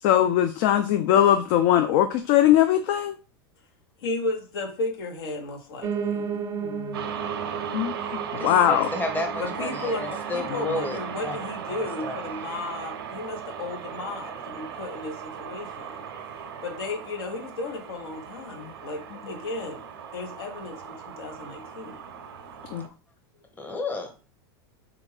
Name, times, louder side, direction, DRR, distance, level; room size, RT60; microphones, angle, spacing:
voice 1, 0.0-3.2 6.2-7.0 7.7-8.9 18.6-18.7 22.7-22.9, left 11 dB, 55° left, 7 dB, 0.4 m, -21 dB
voice 2, 4.0-6.2 9.4-16.1 16.6-19.9 20.1-22.0, left 2 dB, 75° left, 3 dB, 1.0 m, -34 dB
Piano, 5.8-14.9 15.3-16.5 16.8-16.9 17.1-17.2 17.4-17.5 18.1-18.2, right 7 dB, 20° right, 0.5 m, -36 dB
sound 1, 6.9-22.9, right 7 dB, 80° right, 0.5 m, -37 dB
voice 3, 8.4-9.9 10.3-11.4 12.0-12.2 23.6-24.1, left 2 dB, 15° left, 4 dB, 0.8 m, -31 dB
3.5 x 2.4 x 3.2 m, 0.35 s
hypercardioid pair, 105°, 13 cm